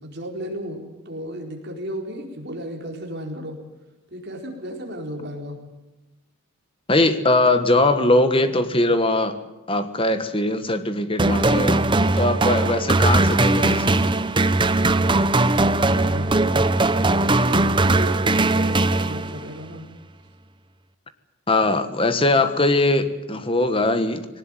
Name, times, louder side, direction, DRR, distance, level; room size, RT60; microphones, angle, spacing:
voice 1, 0.0-3.6 4.1-5.6 15.9-16.5 16.9-19.8, equal, 50° right, 1 dB, 4.5 m, -34 dB
voice 2, 6.9-9.3 9.7-11.8 12.1-14.1 21.5-24.3, left 2 dB, 25° left, 10 dB, 1.5 m, -21 dB
sound 1, 11.2-19.6, right 2 dB, 20° right, 0.8 m, -19 dB
21.0 x 18.5 x 9.2 m, 1.1 s
head